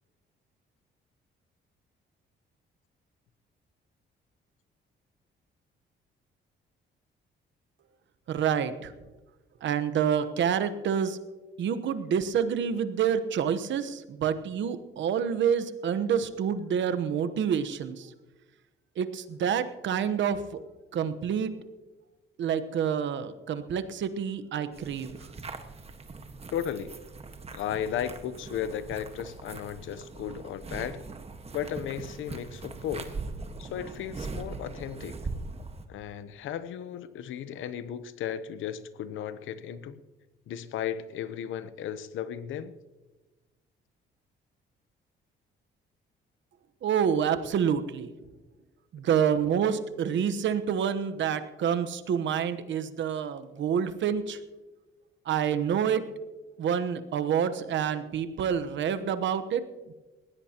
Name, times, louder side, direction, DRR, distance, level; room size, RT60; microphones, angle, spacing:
voice 1, 8.3-8.9 9.6-11.2 11.6-18.1 19.0-20.6 20.9-21.5 22.4-25.3 46.8-48.1 48.9-54.4 55.2-56.0 56.6-59.9, right 8 dB, 70° right, 11 dB, 1.1 m, -28 dB
sound 1, 24.7-35.9, right 3 dB, 30° right, 1.5 m, -41 dB
voice 2, 26.5-26.9 27.5-31.0 31.5-33.1 33.6-35.2 35.9-40.0 40.5-42.7, left 9 dB, 80° left, 13 dB, 0.9 m, -35 dB
20.5 x 16.5 x 3.0 m, 1.2 s
cardioid pair, 90°, 20 cm